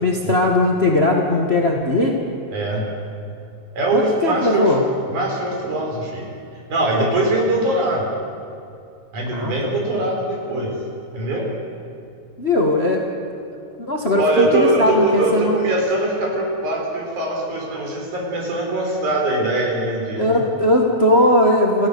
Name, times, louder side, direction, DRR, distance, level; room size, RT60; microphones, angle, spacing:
voice 1, 0.0-2.2 3.9-4.8 9.3-9.8 12.4-13.0 13.8-15.7 20.1-21.9, left 1 dB, 60° left, 0 dB, 0.6 m, -19 dB
voice 2, 2.5-2.9 3.7-4.7 5.1-6.3 6.7-8.1 9.1-10.8 11.1-11.5 14.2-20.4, right 1 dB, 55° right, -1 dB, 5.7 m, -22 dB
30.0 x 15.5 x 6.9 m, 2.4 s
omnidirectional pair, 4.3 m